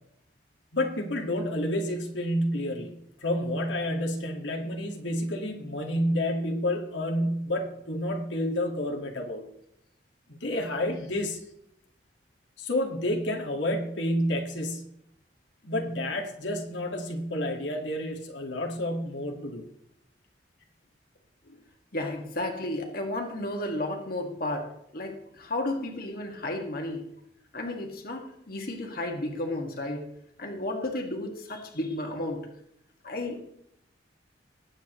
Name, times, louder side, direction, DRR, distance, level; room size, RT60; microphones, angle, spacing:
voice 1, 0.7-9.5 10.3-11.4 12.6-14.9 15.6-19.7 21.5-21.6, left 1 dB, 80° left, 2 dB, 2.0 m, -30 dB
voice 2, 21.9-27.1 27.5-30.1 30.4-32.4 33.0-33.4, left 1 dB, 55° left, 2 dB, 1.9 m, -33 dB
20.0 x 8.8 x 3.1 m, 0.75 s
head